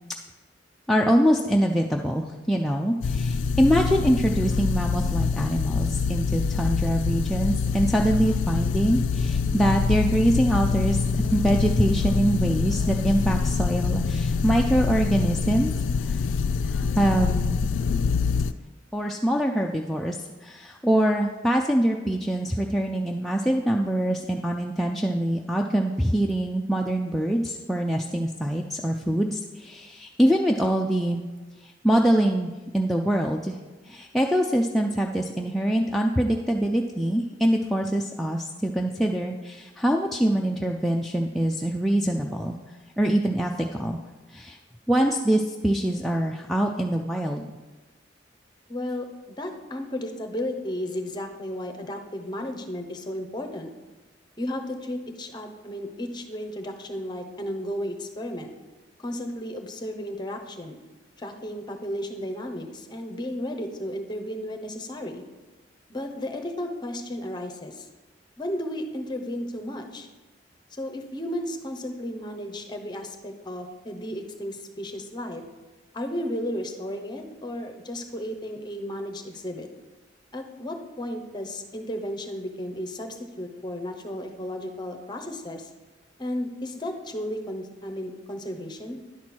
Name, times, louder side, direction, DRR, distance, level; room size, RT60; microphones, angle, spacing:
voice 1, 0.9-15.7 16.0-16.2 16.6-17.6 18.9-31.2 31.6-33.5 33.9-42.6 43.0-44.0 44.3-44.6 44.9-47.5, right 1 dB, ahead, -1 dB, 0.4 m, -24 dB
sound 1, 3.0-18.5, left 5 dB, 85° left, 0.3 m, -25 dB
voice 2, 48.7-49.1 49.4-53.7 54.4-58.5 59.0-60.8 61.2-65.2 65.9-67.9 68.4-70.1 70.7-75.4 75.9-79.7 80.3-85.7 86.2-89.0, left 1 dB, 25° left, 4 dB, 0.8 m, -34 dB
10.5 x 4.3 x 6.1 m, 1.2 s
head